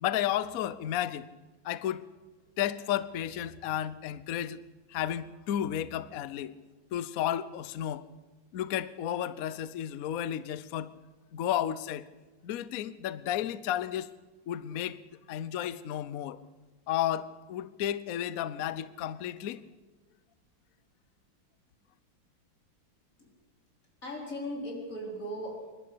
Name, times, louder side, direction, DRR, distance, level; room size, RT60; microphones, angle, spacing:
voice 1, 0.0-1.3 1.6-2.0 2.6-4.6 4.9-6.5 6.9-8.0 8.5-10.9 11.3-12.0 12.4-14.1 14.5-15.0 15.3-16.4 16.9-19.6, left 11 dB, 65° left, 17 dB, 0.9 m, -32 dB
voice 2, 24.0-25.7, equal, 40° left, 0 dB, 4.8 m, -38 dB
26.5 x 12.0 x 8.5 m, 1.2 s
omnidirectional pair, 2.3 m